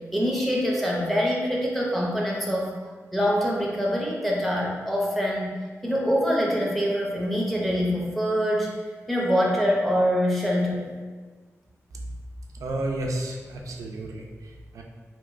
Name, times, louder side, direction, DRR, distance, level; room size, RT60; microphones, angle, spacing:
voice 1, 0.1-2.7 3.1-5.5 5.8-8.7 9.1-10.9, equal, 5° left, -3 dB, 0.5 m, -24 dB
voice 2, 12.5-14.8, right 1 dB, 85° right, 1 dB, 0.3 m, -32 dB
2.9 x 2.8 x 2.4 m, 1.4 s
wide cardioid pair, 145°, 6 cm